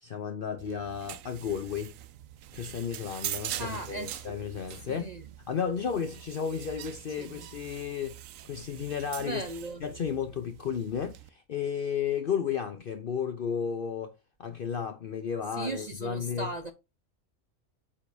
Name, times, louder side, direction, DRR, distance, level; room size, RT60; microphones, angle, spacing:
voice 1, 0.0-1.9 2.5-5.1 5.5-8.2 8.4-9.4 9.8-14.1 14.4-16.5, left 7 dB, 50° left, 0.8 m, -33 dB
sound 1, 0.6-11.3, right 12 dB, 80° right, 1.0 m, -43 dB
voice 2, 3.6-4.4 4.9-5.2 7.2-7.5 9.2-9.8 15.6-16.7, right 2 dB, 45° right, 0.6 m, -37 dB
8.3 x 5.1 x 2.6 m
omnidirectional pair, 1.4 m